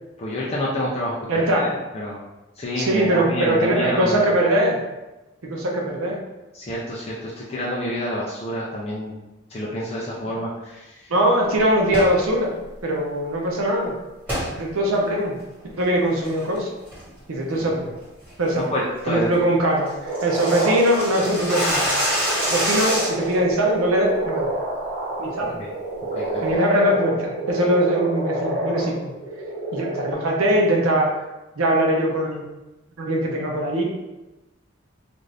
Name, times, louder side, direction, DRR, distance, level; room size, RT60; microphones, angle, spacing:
voice 1, 0.2-2.2 2.6-4.2 6.5-9.2 9.5-11.1 17.6-17.7 18.6-19.4 25.4-25.7 26.1-26.4, equal, 30° left, -6 dB, 0.4 m, -28 dB
voice 2, 1.3-1.7 2.8-4.8 5.4-6.2 11.1-12.5 12.8-13.9 14.4-15.4 15.6-16.7 17.3-17.9 18.4-18.7 19.1-22.0 22.5-24.5 25.2-25.6 26.4-29.0 29.7-31.2 31.6-32.4 33.0-33.8, right 1 dB, 90° right, 0 dB, 0.6 m, -21 dB
sound 1, 11.8-12.2 14.3-14.5 15.0-15.1 15.6-15.8 16.2-16.6 16.9-17.2 17.5-17.6 18.0-18.3 18.6-18.7 19.0-19.1 19.3-19.4 19.7-23.3, equal, 5° right, 1.4 m, -25 dB
sound 2, 20.0-30.1, right 2 dB, 55° right, 0.8 m, -28 dB
2.6 x 2.5 x 3.2 m, 1.0 s
head